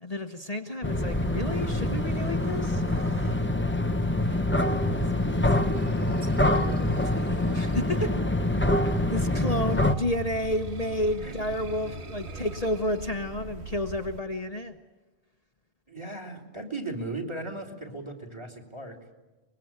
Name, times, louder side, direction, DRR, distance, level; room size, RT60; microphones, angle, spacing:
voice 1, 0.0-2.8 7.5-8.2 8.6-8.8 9.1-14.8, left 1 dB, 35° left, 4 dB, 1.2 m, -31 dB
sound 1, 0.8-9.9, left 1 dB, 10° left, 0.9 m, -25 dB
sound 2, 1.1-14.2, right 4 dB, 75° right, 1.6 m, -41 dB
voice 2, 4.9-8.4 9.3-9.5 11.2-11.4 12.3-12.5 15.9-19.0, right 2 dB, 25° right, 4 dB, 3.1 m, -39 dB
24.0 x 22.0 x 8.8 m, 1.2 s
omnidirectional pair, 1.1 m